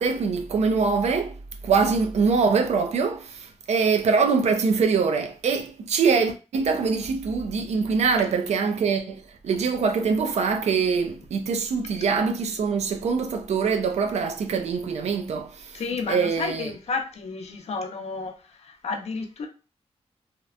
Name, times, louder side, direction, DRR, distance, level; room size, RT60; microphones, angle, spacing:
voice 1, 0.0-15.8 16.1-16.7, right 5 dB, 75° right, 0.4 m, -24 dB
voice 2, 15.7-19.5, left 4 dB, 70° left, 0.5 m, -31 dB
2.8 x 2.1 x 2.4 m
wide cardioid pair, 175°, 11 cm